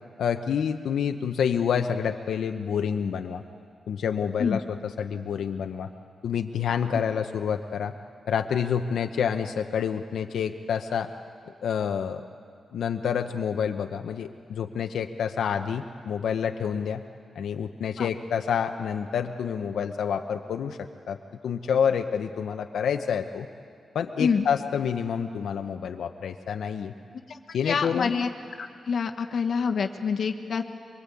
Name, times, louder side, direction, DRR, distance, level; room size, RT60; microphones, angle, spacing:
voice 1, 0.2-3.4 3.9-5.9 6.2-7.9 8.3-11.1 11.6-12.2 12.7-17.0 17.3-21.2 21.4-23.5 23.9-26.9 27.5-28.1, left 7 dB, 85° left, 5 dB, 0.8 m, -28 dB
voice 2, 27.6-28.3 28.9-30.6, left 6 dB, 50° left, 5 dB, 1.3 m, -26 dB
24.0 x 23.5 x 8.4 m, 2.3 s
wide cardioid pair, 180°, 0 cm